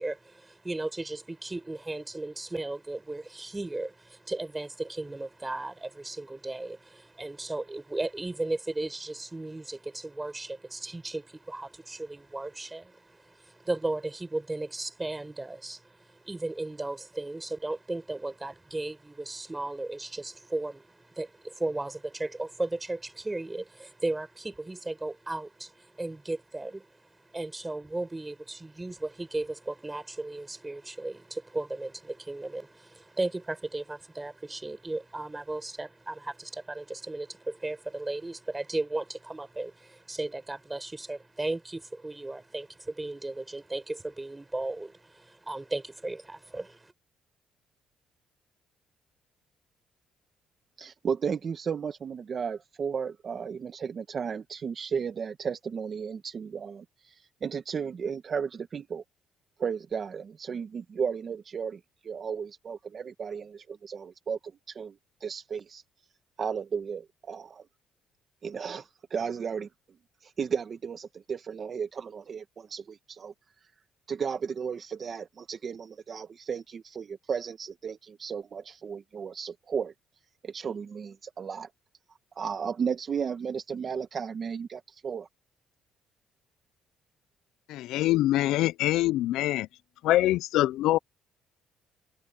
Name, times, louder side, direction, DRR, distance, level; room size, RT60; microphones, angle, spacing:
voice 1, 0.0-46.9, right 2 dB, 15° right, 6.2 m, -35 dB
voice 2, 50.8-59.0 59.6-64.4 64.7-65.8 66.4-67.6 68.4-69.7 70.2-73.3 74.1-79.9 80.4-81.7 82.4-85.3, right 6 dB, 45° right, 1.3 m, -34 dB
voice 3, 87.7-89.7 90.0-91.0, left 15 dB, 85° left, 0.4 m, -24 dB
cardioid pair, 105°, 0 cm